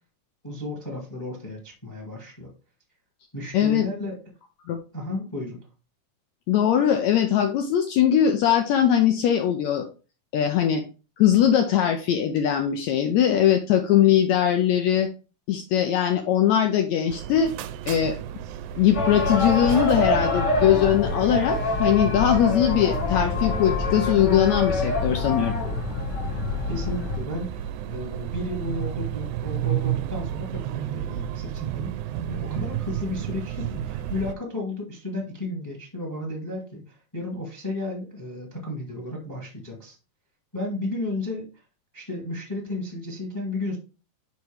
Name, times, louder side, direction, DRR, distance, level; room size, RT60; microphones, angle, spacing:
voice 1, 0.4-2.5 3.3-4.2 4.9-5.7 26.7-31.9 32.3-40.0 40.5-41.5 41.9-43.8, left 2 dB, 10° left, 1 dB, 1.0 m, -33 dB
voice 2, 3.5-3.9 4.7-4.8 6.5-9.9 10.3-10.8 11.2-15.1 15.5-17.5 17.9-18.1 18.8-25.5, left 10 dB, 80° left, 5 dB, 1.7 m, -21 dB
sound 1, 17.1-34.3, right 11 dB, 80° right, 1.8 m, -33 dB
sound 2, 18.9-27.2, left 3 dB, 55° left, 1.2 m, -26 dB
10.5 x 3.6 x 3.3 m, 0.33 s
omnidirectional pair, 3.7 m